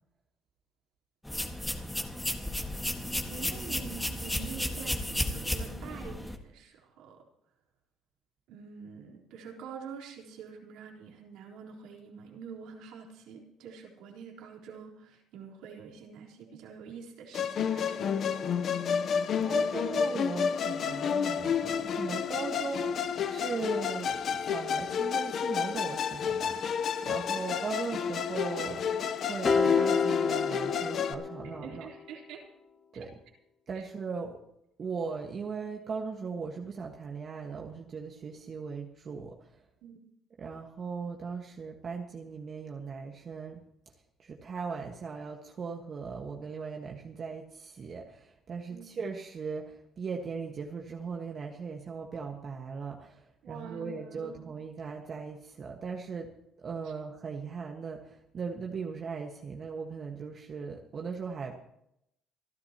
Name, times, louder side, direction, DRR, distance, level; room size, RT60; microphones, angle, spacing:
sound 1, 1.2-6.4, left 1 dB, 5° left, 1.7 m, -33 dB
voice 1, 3.3-7.2 8.5-18.1 18.6-18.8 31.6-32.4 33.7-33.8 39.8-40.0 48.7-48.9 53.4-54.4 56.8-56.9, right 6 dB, 80° right, -1 dB, 3.8 m, -46 dB
Musical instrument, 17.3-31.1, left 7 dB, 55° left, 0.9 m, -30 dB
voice 2, 19.4-28.9 29.2-31.9 32.9-33.1 33.7-34.4 34.8-39.6 40.4-43.6 44.2-56.3 56.6-61.6, right 5 dB, 40° right, 1 dB, 1.6 m, -38 dB
sound 2, 29.4-31.9, left 5 dB, 30° left, 1.5 m, -28 dB
28.0 x 12.0 x 3.0 m, 0.77 s
cardioid pair, 105°, 0 cm